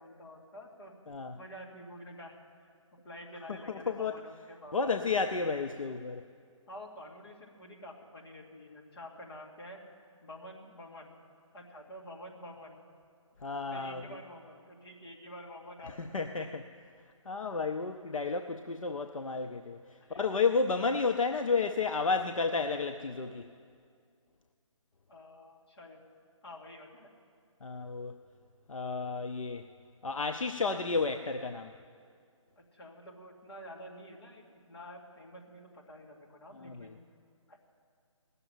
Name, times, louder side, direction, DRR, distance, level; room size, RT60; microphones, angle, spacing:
voice 1, 0.0-0.9 1.4-2.4 3.0-4.9 6.7-9.8 10.2-11.2 11.5-12.8 13.7-16.5 20.0-20.2 25.1-26.0 26.4-27.1 32.6-37.0 37.5-37.6, equal, 45° left, -1 dB, 2.3 m, -49 dB
voice 2, 3.7-4.2 4.7-6.2 13.4-14.0 16.0-16.6 17.3-19.8 20.1-23.5 27.6-28.2 28.7-29.6 30.0-31.7 36.6-36.9, left 4 dB, 75° left, 6 dB, 0.7 m, -31 dB
18.0 x 6.9 x 9.0 m, 2.2 s
figure-of-eight pair, 150°, 17 cm